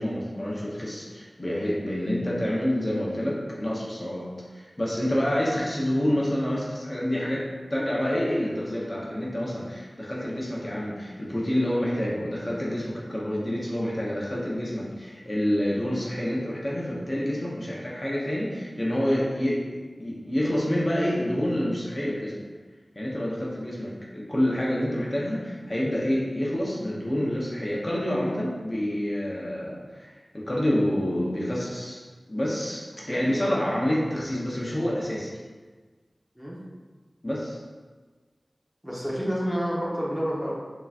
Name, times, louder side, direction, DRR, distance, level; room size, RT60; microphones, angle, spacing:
voice 1, 0.0-22.4 22.9-32.0 32.3-35.4 37.2-37.6, equal, 35° left, -5 dB, 0.9 m, -28 dB
voice 2, 38.8-40.6, equal, 5° right, -6 dB, 1.0 m, -29 dB
5.6 x 3.0 x 2.5 m, 1.4 s
wide cardioid pair, 55°, 0 cm